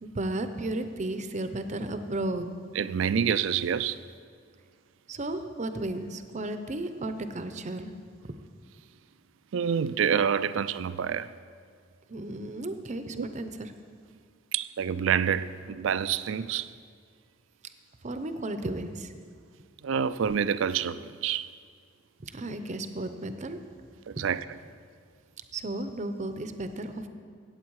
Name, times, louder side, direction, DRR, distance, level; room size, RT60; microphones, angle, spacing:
voice 1, 0.0-2.5 5.1-8.0 8.2-8.4 12.1-13.7 18.0-19.1 22.2-23.6 24.2-24.3 25.5-27.1, right 1 dB, 35° right, 0.7 m, -34 dB
voice 2, 2.8-4.0 9.5-11.3 13.2-13.3 14.5-16.7 19.8-21.5 24.1-24.4, right 7 dB, 70° right, 0.4 m, -27 dB
15.5 x 8.2 x 4.7 m
head